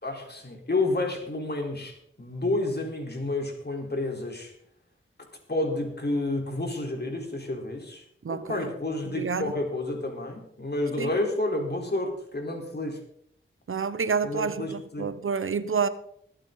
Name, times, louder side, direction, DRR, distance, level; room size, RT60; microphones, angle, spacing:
voice 1, 0.0-4.5 5.5-13.0 14.2-15.1, left 2 dB, 50° left, 4.0 m, -30 dB
voice 2, 8.2-8.7 9.1-9.5 11.0-11.1 13.7-15.9, right 5 dB, 80° right, 0.9 m, -28 dB
21.5 x 8.9 x 4.0 m
cardioid pair, 45°, 21 cm